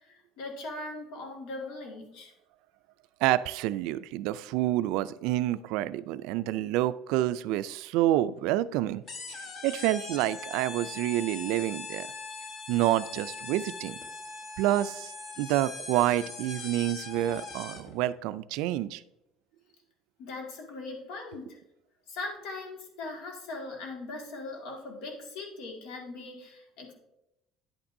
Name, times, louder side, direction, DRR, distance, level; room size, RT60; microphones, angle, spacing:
voice 1, 0.0-2.3 20.2-21.6 22.1-26.9, left 2 dB, 75° left, 1 dB, 1.9 m, -40 dB
voice 2, 3.2-9.0 9.3-12.1 12.7-14.0 14.6-19.0, right 14 dB, 80° right, 15 dB, 0.3 m, -28 dB
sound 1, 9.1-18.0, left 4 dB, 40° left, 1.0 m, -41 dB
10.0 x 8.6 x 2.6 m, 0.89 s
cardioid pair, 155°, 0 cm